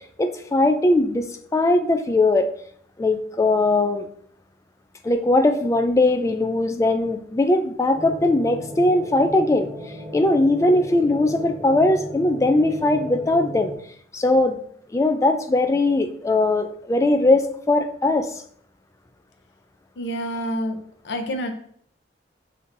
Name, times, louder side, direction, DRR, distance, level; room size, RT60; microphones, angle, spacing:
voice 1, 0.2-2.5 3.0-4.1 5.0-9.7 10.1-13.7 14.1-14.6 14.9-18.3, left 2 dB, 15° left, 7 dB, 0.3 m, -20 dB
sound 1, 7.9-13.8, equal, 15° right, 0.8 m, -36 dB
voice 2, 20.0-20.8 21.0-21.5, equal, 65° left, 5 dB, 0.6 m, -27 dB
6.1 x 2.7 x 2.5 m, 0.63 s
head